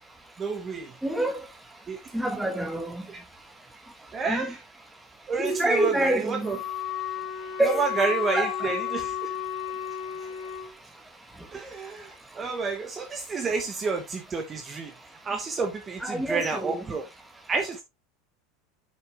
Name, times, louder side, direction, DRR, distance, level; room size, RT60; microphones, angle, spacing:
voice 1, 0.4-0.9 1.9-2.0 4.1-4.6 5.3-6.6 7.6-9.3 11.5-14.9 15.2-17.0 17.5-17.8, right 4 dB, 20° right, 1.3 m, -29 dB
voice 2, 1.0-1.4 2.1-3.0 4.3-4.5 5.4-6.5 7.6-7.8 8.3-8.5 16.0-16.8, right 1 dB, 5° right, 1.6 m, -26 dB
Wind instrument woodwind instrument, 6.4-10.7, left 10 dB, 50° left, 2.3 m, -33 dB
9.0 x 6.1 x 3.4 m
supercardioid pair, 155°, 0 cm